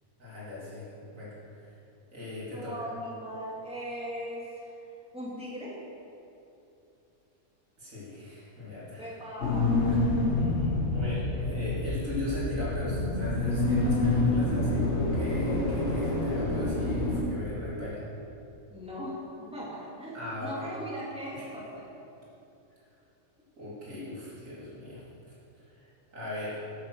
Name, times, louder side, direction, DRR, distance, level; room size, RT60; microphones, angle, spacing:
voice 1, 0.2-0.9 1.1-1.7 2.1-2.7 7.8-9.2 9.9-10.0 10.9-18.0 20.1-20.7 21.4-21.5 23.6-25.0 25.7-26.6, left 2 dB, 65° right, -8 dB, 3.6 m, -38 dB
voice 2, 2.5-4.7 5.1-5.8 9.0-10.1 10.4-10.7 18.7-21.8, equal, 5° right, -7 dB, 2.6 m, -39 dB
sound 1, 9.4-17.2, left 2 dB, 55° left, 1.6 m, -27 dB
9.0 x 8.5 x 6.4 m, 2.8 s
omnidirectional pair, 1.5 m